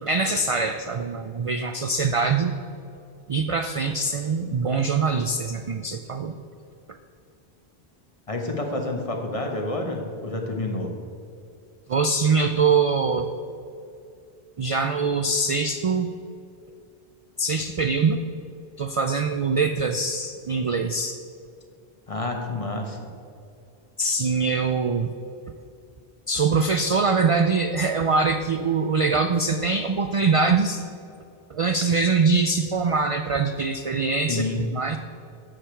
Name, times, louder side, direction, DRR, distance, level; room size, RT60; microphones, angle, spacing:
voice 1, 0.0-2.5 3.3-6.3 11.9-13.3 14.6-16.1 17.4-18.2 18.8-21.2 24.0-25.1 26.3-30.8 31.5-34.4 34.7-35.0, right 4 dB, 50° right, 7 dB, 0.4 m, -23 dB
voice 2, 8.3-10.9 22.1-23.1 34.3-34.6, left 2 dB, 35° left, 2 dB, 1.2 m, -29 dB
12.5 x 6.6 x 4.5 m, 2.5 s
omnidirectional pair, 1.0 m